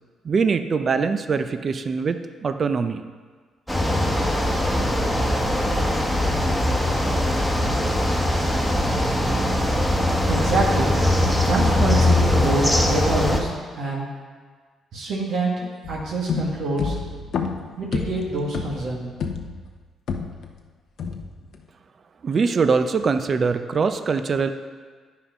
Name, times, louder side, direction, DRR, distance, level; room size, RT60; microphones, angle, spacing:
voice 1, 0.2-3.0 22.2-24.5, right 5 dB, 45° right, 9 dB, 0.5 m, -22 dB
sound 1, 3.7-13.4, left 1 dB, ahead, 1.3 m, -21 dB
voice 2, 10.3-11.0 11.4-14.1 14.9-17.0 17.8-19.1, right 2 dB, 70° right, -3 dB, 1.7 m, -26 dB
sound 2, 15.8-20.6 21.0-21.6, left 5 dB, 65° left, 0.7 m, -30 dB
9.7 x 5.6 x 5.1 m, 1.5 s
cardioid pair, 90°, 0 cm